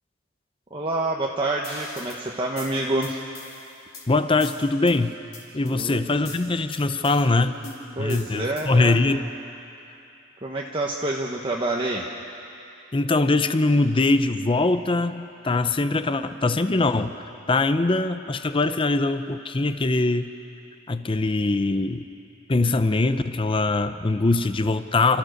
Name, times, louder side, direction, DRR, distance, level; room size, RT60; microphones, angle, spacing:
voice 1, 0.7-3.2 5.7-6.0 8.0-9.0 10.4-12.1, right 2 dB, 25° right, -1 dB, 1.1 m, -27 dB
sound 1, 1.6-2.2 2.6-4.1 4.4-4.9 5.3-5.9 6.3-7.2 7.6-8.8, left 3 dB, 50° left, 3.8 m, -41 dB
voice 2, 4.1-5.1 5.5-7.6 8.0-9.2 12.9-20.3 20.9-22.0 22.5-25.2, left 2 dB, 25° left, 11 dB, 0.6 m, -22 dB
29.5 x 13.5 x 6.5 m, 2.8 s
head